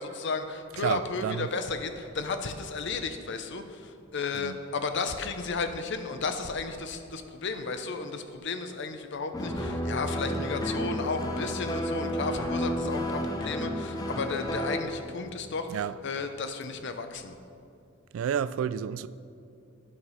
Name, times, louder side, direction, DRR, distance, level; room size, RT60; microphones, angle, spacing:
voice 1, 0.0-17.4, left 4 dB, 60° left, 0.7 m, -33 dB
voice 2, 0.8-1.5 4.4-4.6 15.7-16.0 18.1-19.1, right 8 dB, 80° right, 0.3 m, -30 dB
sound 1, 9.3-14.8, equal, 20° left, 0.7 m, -31 dB
11.0 x 6.0 x 5.6 m
head